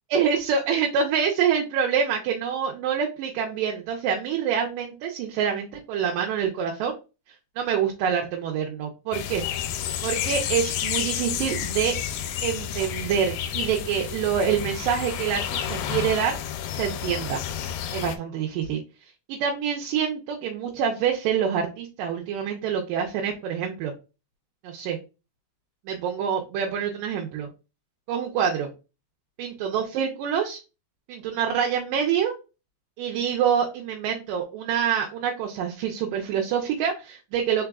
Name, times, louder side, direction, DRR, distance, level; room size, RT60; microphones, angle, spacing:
voice 1, 0.1-6.9 7.6-9.4 10.0-12.0 12.4-16.4 16.7-17.4 17.9-18.8 19.3-23.9 24.6-25.0 25.9-27.5 28.1-28.7 29.4-30.6 31.1-32.3 33.0-37.7, right 7 dB, 80° right, 0 dB, 2.2 m, -26 dB
sound 1, 9.1-18.2, left 9 dB, 90° left, 2.4 m, -30 dB
4.8 x 4.0 x 2.3 m, 0.30 s
omnidirectional pair, 4.0 m